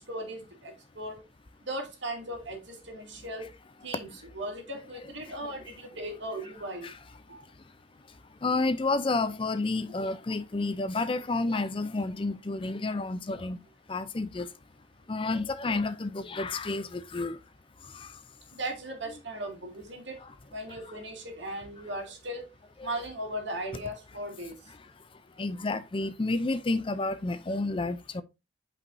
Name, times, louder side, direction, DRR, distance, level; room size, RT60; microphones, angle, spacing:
voice 1, 0.1-1.2 1.7-3.5 3.8-4.1 4.3-6.9 7.3-7.5 18.5-20.2 20.5-22.5 22.8-24.5, right 1 dB, 60° right, 2.4 m, -37 dB
voice 2, 8.1-13.6 13.9-14.5 15.1-17.4 17.8-18.2 20.2-20.3 22.8-22.9 24.7-28.2, left 3 dB, 25° left, 0.4 m, -31 dB
8.4 x 5.3 x 2.6 m
head